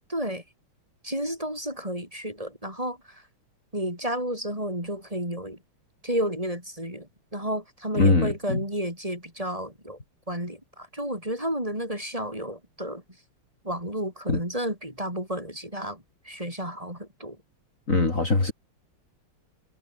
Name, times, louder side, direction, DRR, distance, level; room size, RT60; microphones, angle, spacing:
voice 1, 0.1-0.4 1.0-3.2 3.7-5.6 6.0-10.0 10.3-13.0 13.6-17.4, equal, 15° right, 7.7 m, -32 dB
voice 2, 7.9-8.6 14.3-14.4 17.9-18.5, left 3 dB, 35° left, 3.7 m, -22 dB
omnidirectional pair, 2.3 m